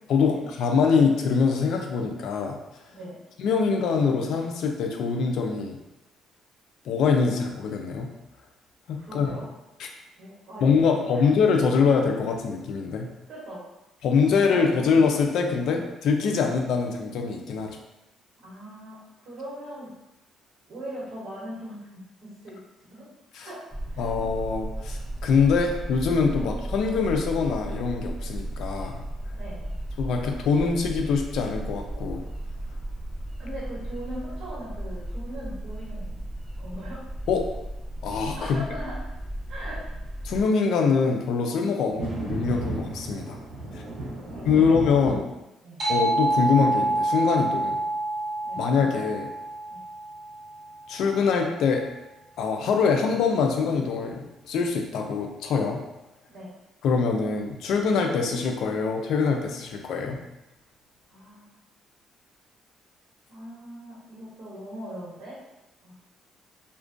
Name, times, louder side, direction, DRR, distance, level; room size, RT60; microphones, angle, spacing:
voice 1, 0.1-2.6 3.4-5.8 6.9-8.1 8.9-9.4 10.6-13.1 14.0-17.8 23.3-23.5 24.0-29.0 30.0-32.2 37.3-37.5 38.0-38.6 40.2-43.4 43.7-43.8 44.5-45.2 45.9-47.8 48.6-49.3 50.9-51.9 52.4-55.8 56.8-60.2, left 5 dB, 75° left, 3 dB, 0.3 m, -24 dB
voice 2, 2.9-3.2 9.0-9.5 10.2-10.7 11.1-11.3 13.3-13.7 14.3-14.8 18.4-19.9 20.7-22.6 22.9-23.1 23.3-24.1 26.4-26.5 29.3-29.7 33.4-36.3 36.6-37.0 38.3-39.1 39.5-39.9 40.2-40.3 41.9-42.0 44.3-45.3 45.6-45.9 47.7-47.8 48.4-48.6 49.7-49.8 56.2-56.5 61.1-61.6 63.3-65.4 65.8-65.9, equal, 60° right, -9 dB, 1.0 m, -40 dB
sound 1, 23.7-40.4, right 1 dB, 15° left, 0.7 m, -35 dB
sound 2, 41.3-41.4 41.6-45.2, right 1 dB, 80° right, 0.7 m, -34 dB
sound 3, 45.8-50.8, right 2 dB, 40° right, 0.7 m, -27 dB
2.4 x 2.2 x 2.5 m, 0.97 s
cardioid pair, 135°, 0 cm